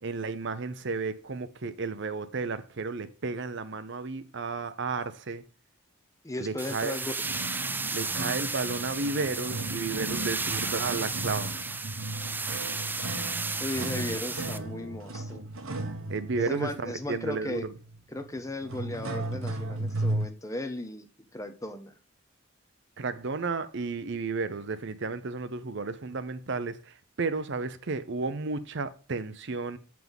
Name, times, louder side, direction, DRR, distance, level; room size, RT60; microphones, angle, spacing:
voice 1, 0.0-5.4 6.4-7.0 7.9-11.5 16.1-17.7 23.0-29.8, right 4 dB, 60° right, 0.7 m, -33 dB
voice 2, 6.2-7.1 13.6-15.5 16.3-17.7 18.1-21.1 21.3-21.9, left 1 dB, 15° left, 0.8 m, -36 dB
sound 1, 6.6-14.6, right 4 dB, 10° right, 0.3 m, -33 dB
sound 2, 7.2-20.3, right 2 dB, 75° right, 1.2 m, -36 dB
7.6 x 5.9 x 3.5 m
head